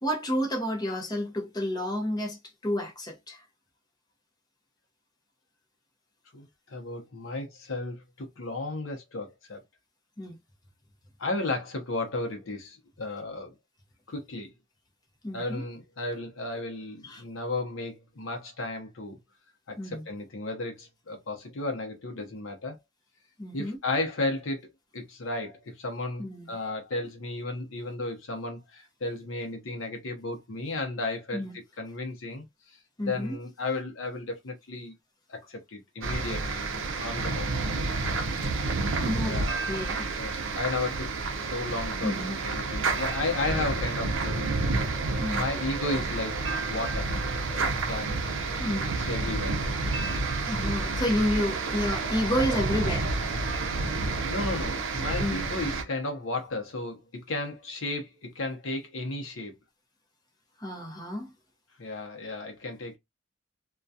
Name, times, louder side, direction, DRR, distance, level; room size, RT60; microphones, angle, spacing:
voice 1, 0.0-3.4 10.2-10.4 15.2-15.6 17.0-17.2 19.8-20.1 23.4-23.8 26.2-26.6 31.3-31.6 33.0-33.4 38.4-38.5 39.0-39.4 39.7-40.1 42.0-42.4 45.2-45.5 48.6-48.9 50.5-53.1 55.2-55.4 60.6-61.3, left 1 dB, 20° left, 0.7 m, -30 dB
voice 2, 6.3-9.6 11.2-13.5 14.1-14.5 15.3-19.2 19.7-22.8 23.5-32.8 33.0-34.9 35.3-36.7 37.0-37.6 39.2-39.6 40.2-41.1 41.4-42.2 42.4-46.4 46.7-47.1 47.5-48.2 49.0-49.6 53.8-59.5 61.8-63.0, left 2 dB, 70° left, 0.7 m, -34 dB
sound 1, 36.0-55.8, right 3 dB, 65° right, 0.6 m, -29 dB
2.3 x 2.2 x 2.6 m
head